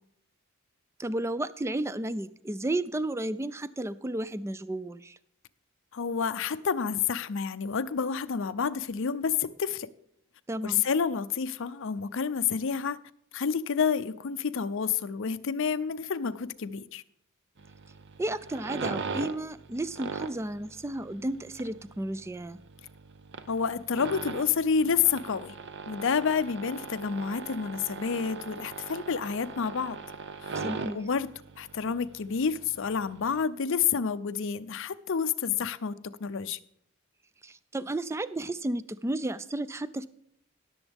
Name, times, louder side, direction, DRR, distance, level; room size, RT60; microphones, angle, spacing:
voice 1, 1.0-5.2 10.5-10.8 18.2-22.6 30.6-31.0 37.4-40.1, right 1 dB, 10° right, 0.3 m, -33 dB
voice 2, 5.9-9.9 10.6-13.0 13.3-17.0 23.5-25.5 25.9-30.0 30.4-30.6 30.9-31.3 31.6-36.6, left 6 dB, 60° left, 0.5 m, -29 dB
sound 1, 17.6-33.4, right 4 dB, 50° right, 0.7 m, -40 dB
18.0 x 7.1 x 3.5 m
head